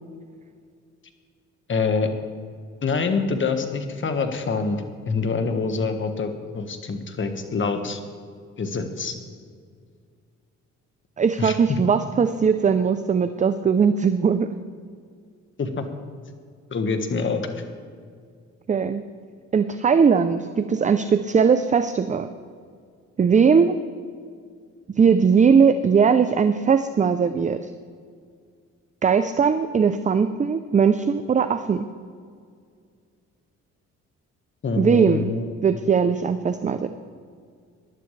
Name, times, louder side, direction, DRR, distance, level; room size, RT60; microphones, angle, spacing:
voice 1, 1.7-2.1 2.8-8.0 8.6-9.1 11.4-11.8 15.6-15.9 16.7-17.4 34.6-35.4, left 4 dB, 40° left, 6 dB, 1.5 m, -25 dB
voice 2, 11.2-14.5 18.7-19.0 19.5-22.3 23.2-23.8 25.0-27.6 29.0-31.9 34.8-35.3 35.6-36.9, right 6 dB, 25° right, 10 dB, 0.5 m, -19 dB
19.0 x 11.5 x 3.3 m, 2.1 s
cardioid pair, 90°, 30 cm